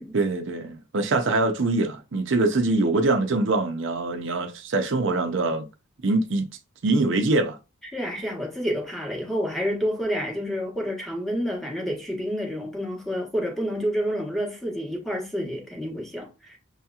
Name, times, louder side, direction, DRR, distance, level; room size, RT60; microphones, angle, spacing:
voice 1, 0.1-5.7 6.0-6.5 6.8-7.6, right 2 dB, 60° right, 0.6 m, -23 dB
voice 2, 7.9-16.6, equal, ahead, 0.9 m, -29 dB
6.1 x 2.8 x 2.3 m
head